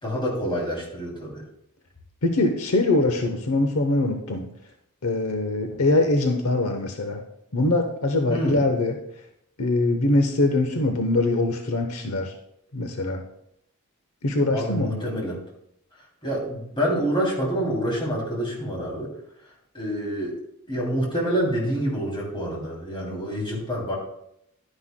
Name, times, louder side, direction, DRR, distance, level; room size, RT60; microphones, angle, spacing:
voice 1, 0.0-1.4 5.7-5.8 8.3-8.6 14.5-15.4 16.2-19.1 19.7-20.4 20.7-23.9, equal, 25° left, -2 dB, 3.0 m, -27 dB
voice 2, 2.2-4.5 5.0-7.2 7.5-9.0 9.6-12.3 12.7-13.2 14.2-15.1, left 2 dB, 70° left, 5 dB, 0.9 m, -23 dB
12.0 x 9.7 x 2.2 m, 0.77 s
head